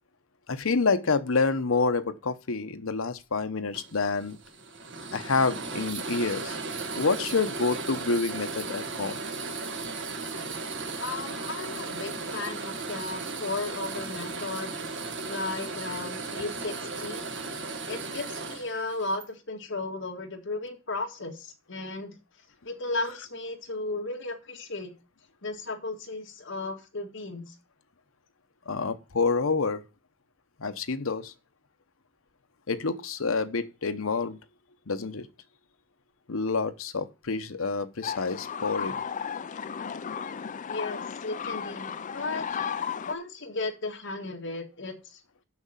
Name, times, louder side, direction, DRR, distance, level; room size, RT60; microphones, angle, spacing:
voice 1, 0.5-4.4 5.1-6.6 7.0-9.2 28.7-29.8 30.6-31.3 32.7-34.4 34.9-35.3 36.3-39.0, left 4 dB, 85° left, 0.9 m, -28 dB
sound 1, 3.7-19.3, right 3 dB, 60° right, 1.5 m, -36 dB
voice 2, 11.0-14.7 15.3-17.2 17.9-22.1 22.6-24.9 25.4-27.5 40.6-42.5 42.8-45.2, left 3 dB, 65° left, 1.9 m, -35 dB
sound 2, 38.0-43.2, left 7 dB, 40° left, 0.4 m, -34 dB
6.5 x 6.2 x 7.3 m
head